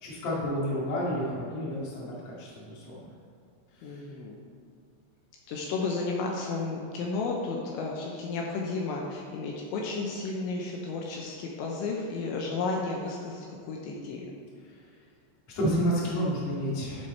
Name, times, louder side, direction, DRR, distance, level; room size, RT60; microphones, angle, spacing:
voice 1, 0.0-3.1 3.8-4.0 15.5-17.1, equal, 45° left, -6 dB, 2.1 m, -30 dB
voice 2, 3.8-4.4 5.5-14.3, left 3 dB, 80° left, -1 dB, 3.0 m, -33 dB
13.0 x 4.7 x 4.3 m, 2.3 s
omnidirectional pair, 5.6 m